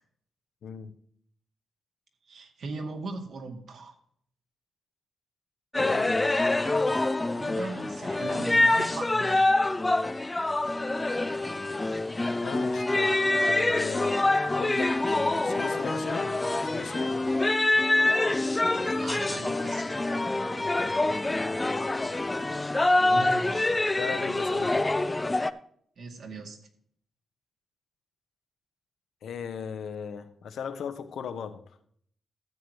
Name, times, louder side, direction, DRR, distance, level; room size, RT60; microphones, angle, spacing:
voice 1, 0.6-0.9 5.8-6.3 12.4-16.4 16.7-17.2 23.1-23.3 24.0-24.9 29.2-31.6, left 7 dB, 80° left, 1.1 m, -37 dB
voice 2, 2.3-4.0 7.3-9.6 18.9-20.0 23.0-23.7 26.0-26.6, right 3 dB, 65° right, 2.1 m, -39 dB
sound 1, 5.7-25.5, left 2 dB, 15° left, 0.5 m, -26 dB
13.5 x 8.1 x 3.1 m
cardioid pair, 115°, 0 cm